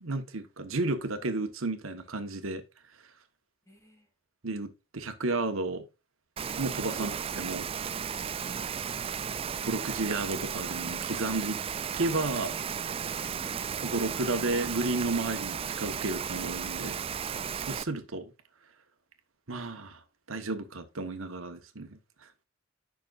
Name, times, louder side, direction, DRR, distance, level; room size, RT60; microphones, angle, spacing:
voice 1, 0.0-2.6 4.4-5.8 6.6-7.1 7.4-7.7 9.7-11.6 12.0-12.5 13.8-17.0 17.5-18.3 19.5-20.0 20.3-22.0, right 2 dB, 85° right, 1.3 m, -32 dB
voice 2, 3.7-4.1 6.9-7.1 8.4-8.7 13.2-13.7, right 4 dB, 15° left, 2.8 m, -51 dB
Rain, 6.4-17.8, right 7 dB, 30° right, 0.3 m, -34 dB
10.5 x 6.2 x 2.5 m
head